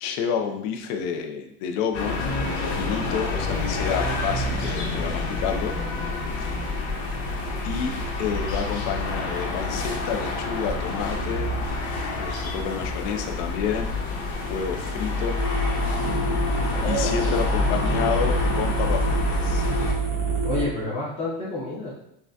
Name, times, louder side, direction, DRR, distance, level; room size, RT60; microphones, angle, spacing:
voice 1, 0.0-2.2 2.7-5.7 7.6-7.9 8.2-11.5 12.2-13.9 14.4-15.4 16.5-19.7, left 7 dB, 55° left, 5 dB, 0.5 m, -29 dB
sound 1, 1.9-19.9, left 3 dB, 90° left, 1.1 m, -27 dB
sound 2, 15.4-20.6, right 4 dB, 25° right, 0.6 m, -27 dB
voice 2, 16.7-17.2 20.4-21.9, left 1 dB, 15° left, -6 dB, 0.7 m, -29 dB
5.8 x 2.2 x 2.6 m, 0.77 s
cardioid pair, 170°, 35 cm